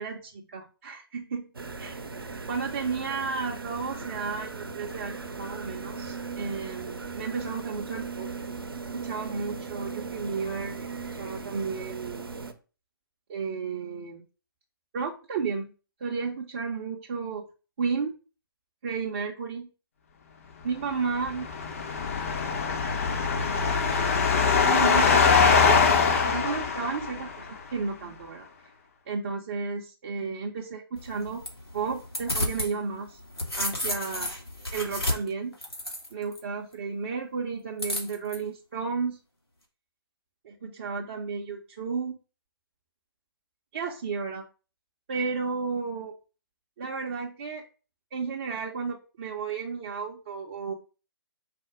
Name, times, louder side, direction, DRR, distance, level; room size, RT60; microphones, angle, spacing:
voice 1, 0.0-1.5 1.8-2.0 2.5-8.3 8.9-12.3 13.3-14.2 14.9-15.7 16.0-17.4 17.8-18.1 18.8-19.7 20.6-21.5 24.6-28.5 29.1-31.4 31.7-33.2 33.6-34.3 34.7-35.5 36.1-39.2 40.4-42.2 43.7-44.4 45.1-46.1 46.8-47.6 48.1-50.7, right 5 dB, 30° right, -1 dB, 0.5 m, -33 dB
sound 1, 1.5-12.5, right 4 dB, 70° right, 0.7 m, -38 dB
sound 2, 21.1-27.4, left 5 dB, 35° left, 0.6 m, -23 dB
sound 3, 31.0-32.7 33.1-36.4 37.8-38.4, left 1 dB, 80° left, 1.6 m, -32 dB
4.8 x 2.0 x 4.7 m, 0.34 s
figure-of-eight pair, 140°, 13 cm